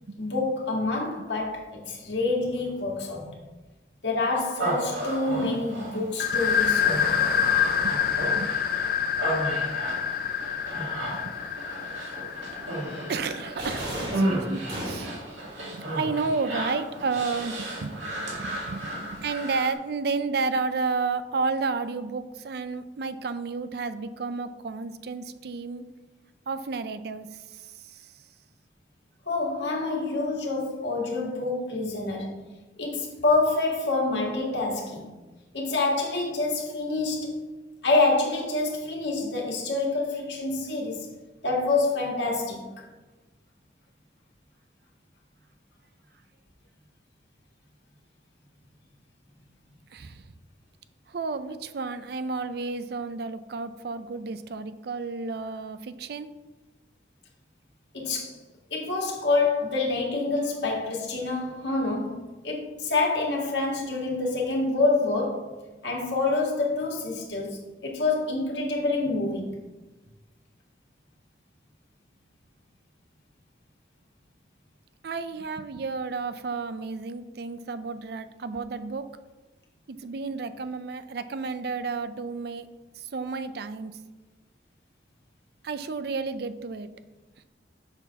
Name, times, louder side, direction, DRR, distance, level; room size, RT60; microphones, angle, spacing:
voice 1, 0.2-3.4 4.0-7.5 29.3-32.4 32.8-35.1 35.5-37.4 37.8-41.1 41.4-42.8 57.9-58.4 58.7-65.5 65.8-69.6, left 3 dB, 75° left, -1 dB, 1.8 m, -27 dB
Human voice, 4.6-19.8, right 1 dB, 85° right, 2.3 m, -33 dB
sound 1, 6.2-13.7, left 8 dB, 55° left, 0.4 m, -27 dB
voice 2, 8.3-8.8 11.1-11.3 13.1-15.1 15.6-25.8 26.5-28.2 49.9-50.3 51.1-56.3 75.0-79.1 79.9-82.7 83.0-84.0 85.6-86.9, right 4 dB, 60° right, 12 dB, 0.4 m, -32 dB
sound 2, 13.6-15.3, right 1 dB, 30° right, 2.7 m, -34 dB
6.9 x 4.2 x 5.8 m, 1.1 s
head